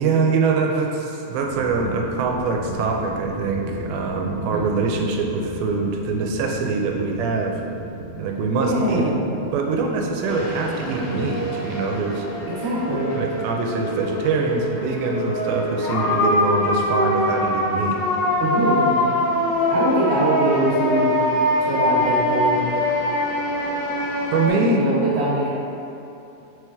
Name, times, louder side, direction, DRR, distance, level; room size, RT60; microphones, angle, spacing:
voice 1, 0.0-7.5 8.1-9.1 9.5-12.3 13.1-18.0 24.3-24.8, right 4 dB, 85° right, 1 dB, 2.4 m, -24 dB
sound 1, 1.3-20.1, equal, 70° right, 1.9 m, -38 dB
voice 2, 8.5-9.3 12.5-13.2 18.4-18.9 19.7-21.1 21.6-22.6 24.5-25.5, right 1 dB, 55° right, -9 dB, 1.9 m, -23 dB
sound 2, 10.3-24.5, left 1 dB, 70° left, 2.4 m, -23 dB
6.0 x 4.7 x 3.4 m, 2.8 s
omnidirectional pair, 4.2 m